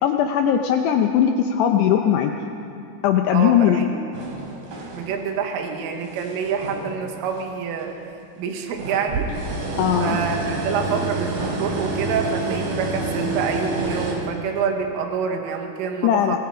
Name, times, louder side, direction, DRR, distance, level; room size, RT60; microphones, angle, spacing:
voice 1, 0.0-2.3 3.0-3.9 9.8-10.2 16.0-16.4, left 9 dB, 90° left, 4 dB, 2.4 m, -19 dB
voice 2, 3.3-3.9 4.9-8.0 8.4-9.4 10.0-16.4, right 6 dB, 75° right, 3 dB, 4.1 m, -27 dB
sound 1, 4.1-5.4 5.8-7.4 7.7-7.8 8.6-14.1, right 3 dB, 45° right, 4.6 m, -28 dB
25.0 x 21.5 x 5.0 m, 2.7 s
omnidirectional pair, 5.9 m